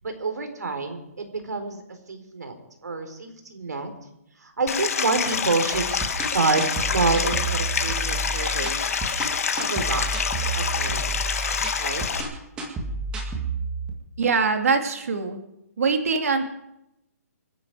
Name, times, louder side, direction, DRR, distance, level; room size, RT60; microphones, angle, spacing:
voice 1, 0.0-2.6 2.8-3.9 4.4-8.7 9.5-11.2 11.8-12.0, right 3 dB, 90° right, 6 dB, 4.1 m, -28 dB
Stream, 4.7-12.2, left 6 dB, 60° left, 1.6 m, -27 dB
sound 1, 5.7-13.9, right 3 dB, 10° right, 2.0 m, -31 dB
voice 2, 14.2-15.4 15.8-16.5, right 4 dB, 60° right, 6 dB, 2.5 m, -23 dB
26.0 x 10.5 x 4.8 m, 0.85 s
hypercardioid pair, 165°, 9 cm